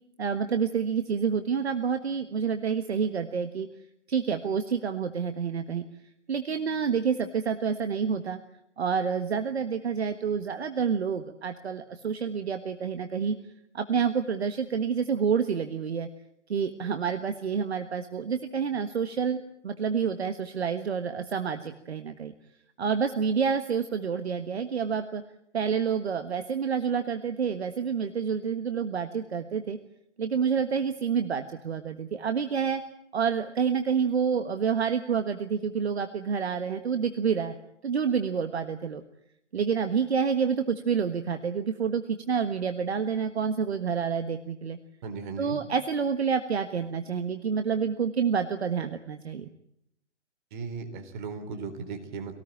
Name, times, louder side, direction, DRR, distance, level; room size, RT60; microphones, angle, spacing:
voice 1, 0.2-3.7 4.1-5.8 6.3-8.4 8.8-13.3 13.7-16.1 16.5-22.3 22.8-25.2 25.5-29.8 30.2-32.8 33.1-37.6 37.8-39.0 39.5-44.8 45.4-49.5, right 6 dB, 65° right, 8 dB, 1.6 m, -28 dB
voice 2, 45.0-45.6 50.5-52.3, right 4 dB, 40° right, 8 dB, 3.9 m, -37 dB
25.0 x 18.5 x 8.9 m, 0.79 s
figure-of-eight pair, 125°, 35 cm